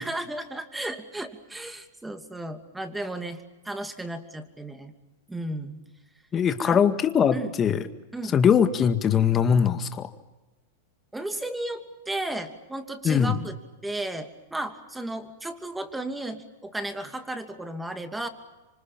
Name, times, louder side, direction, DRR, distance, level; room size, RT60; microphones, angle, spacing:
voice 1, 0.0-3.4 3.6-4.9 5.3-5.8 6.6-6.8 7.3-7.5 8.1-8.4 11.1-13.6 13.8-18.3, right 1 dB, 5° right, 7 dB, 2.7 m, -34 dB
voice 2, 6.3-7.8 8.3-10.1 13.0-13.4, left 7 dB, 25° left, 9 dB, 2.0 m, -21 dB
27.0 x 25.0 x 7.4 m, 1.1 s
hypercardioid pair, 115°, 0 cm